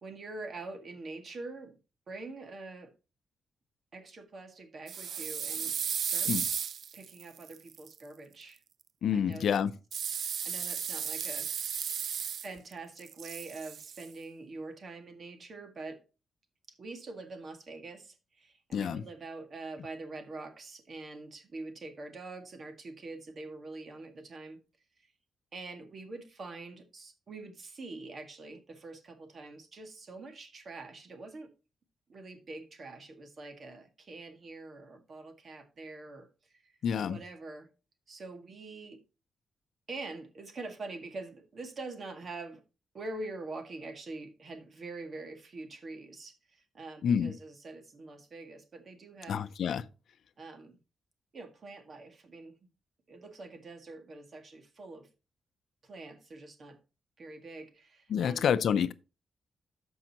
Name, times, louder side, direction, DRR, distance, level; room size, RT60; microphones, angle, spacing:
voice 1, 0.0-1.8 2.1-2.9 3.9-6.3 6.9-8.6 9.1-9.6 10.4-11.5 12.4-16.0 16.8-24.6 25.5-31.5 32.1-36.3 36.5-36.7 37.1-37.7 38.1-39.0 39.9-42.6 42.9-49.5 50.4-50.8 51.3-52.5 53.1-55.1 55.8-56.8 57.2-58.5, right 3 dB, 45° right, 1.9 m, -45 dB
sound 1, 4.9-7.9 9.9-12.7 13.0-14.1, right 8 dB, 65° right, 0.4 m, -35 dB
voice 2, 9.0-9.7 18.7-19.0 36.8-37.2 47.0-47.3 49.3-49.9 58.1-58.9, left 7 dB, 70° left, 0.5 m, -28 dB
13.5 x 5.5 x 2.9 m
cardioid pair, 125°, 0 cm